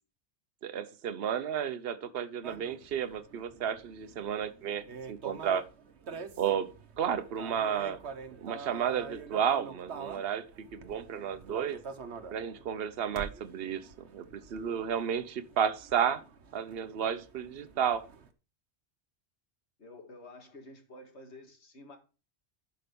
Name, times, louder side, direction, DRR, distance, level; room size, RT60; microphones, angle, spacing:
voice 1, 0.6-5.6 6.4-6.7 7.0-8.0 8.4-10.4 10.7-11.8 12.3-16.2 16.5-18.1, right 8 dB, 65° right, 12 dB, 1.0 m, -32 dB
sound 1, 2.4-18.3, right 5 dB, 80° right, 1.3 m, -46 dB
voice 2, 19.8-22.0, left 2 dB, 85° left, 4 dB, 2.3 m, -50 dB
11.0 x 5.3 x 5.3 m, 0.34 s
omnidirectional pair, 1.1 m